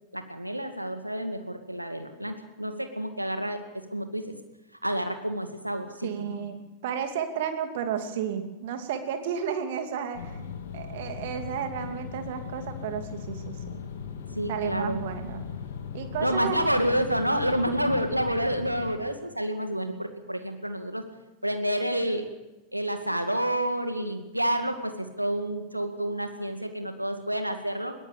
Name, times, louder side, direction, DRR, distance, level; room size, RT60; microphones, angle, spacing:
voice 1, 0.1-3.6 3.9-4.3 4.8-6.4 14.3-15.0 16.2-21.0 21.4-22.3 22.7-27.9, right 1 dB, 90° right, 6 dB, 2.2 m, -29 dB
voice 2, 6.0-10.4 10.7-13.8 14.5-15.4 15.9-16.6, right 8 dB, 55° right, 6 dB, 2.7 m, -32 dB
sound 1, 10.1-19.0, left 7 dB, 60° left, 2.3 m, -38 dB
21.5 x 18.0 x 6.9 m, 1.0 s
figure-of-eight pair, 90°, 0 cm